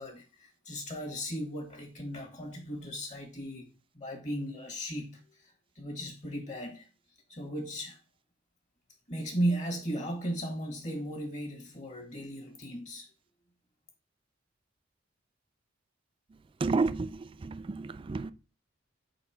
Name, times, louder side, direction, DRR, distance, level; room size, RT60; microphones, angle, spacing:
voice 1, 0.0-3.7 3.9-5.5 5.7-6.9 7.3-8.0 9.1-13.1, right 1 dB, 40° left, 1.5 m, -36 dB
voice 2, 16.6-18.3, right 3 dB, 25° right, 0.3 m, -31 dB
4.2 x 4.0 x 5.5 m
head